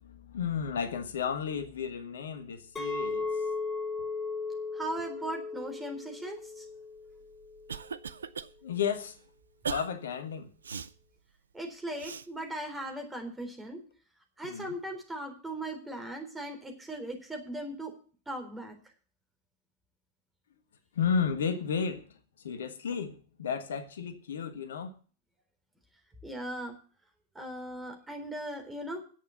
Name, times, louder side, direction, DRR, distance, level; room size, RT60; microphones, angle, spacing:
voice 1, 0.0-3.3 8.6-9.2 9.7-10.5 14.4-14.7 20.9-22.0 22.4-24.9, left 6 dB, 65° left, 1.3 m, -33 dB
Chink clink, 2.8-7.9, left 4 dB, 15° left, 4.9 m, -36 dB
voice 2, 4.7-6.6 11.5-13.8 14.4-17.9 18.3-18.8 26.2-26.8 27.3-29.0, right 1 dB, 10° right, 3.9 m, -38 dB
Cough, 7.1-8.5 8.9-9.1 9.6-9.9 10.6-10.9 12.0-12.3, right 6 dB, 70° right, 0.6 m, -38 dB
10.5 x 8.4 x 8.1 m
figure-of-eight pair, 90°, 0 cm